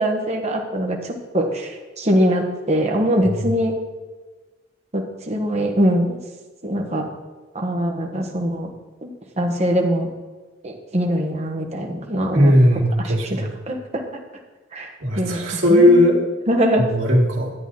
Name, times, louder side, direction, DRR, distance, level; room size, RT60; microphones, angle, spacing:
voice 1, 0.0-3.8 4.9-6.2 6.6-7.1 7.5-8.7 9.0-9.1 9.4-10.1 10.6-12.5 13.0-14.0 14.7-14.9 15.1-16.2 16.5-16.9, equal, 35° right, 1 dB, 1.4 m, -22 dB
voice 2, 12.3-13.4 15.0-16.2 16.8-17.5, equal, 85° right, -1 dB, 2.2 m, -17 dB
11.0 x 9.1 x 4.0 m, 1.3 s
head